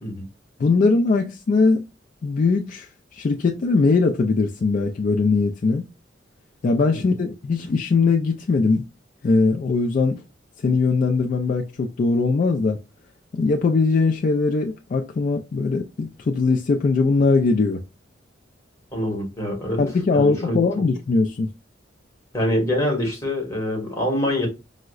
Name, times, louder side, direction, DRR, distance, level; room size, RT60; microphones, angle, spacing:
voice 1, 0.6-1.8 2.2-2.9 3.1-5.9 6.6-8.8 9.2-10.2 10.6-12.8 13.3-17.8 19.8-21.5, left 4 dB, 45° left, 0.3 m, -20 dB
voice 2, 18.9-19.8 20.1-20.6 22.3-24.5, left 1 dB, 15° left, 1.3 m, -24 dB
4.6 x 2.1 x 2.3 m
head